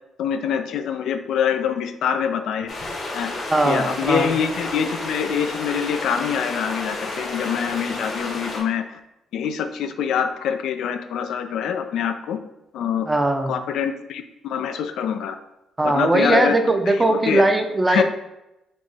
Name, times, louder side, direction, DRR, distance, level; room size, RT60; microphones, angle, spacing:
voice 1, 0.2-2.7 3.1-3.3 3.6-9.0 9.3-12.4 12.7-13.1 13.5-15.4 15.8-16.6 16.9-17.5 17.9-18.0, left 8 dB, 80° left, 8 dB, 0.3 m, -25 dB
sound 1, 2.7-8.6, left 2 dB, 55° left, 1.0 m, -31 dB
voice 2, 3.5-4.3 13.1-13.5 15.8-18.0, right 2 dB, 15° right, 5 dB, 0.5 m, -19 dB
4.3 x 2.9 x 3.2 m, 0.92 s
cardioid pair, 90°, 0 cm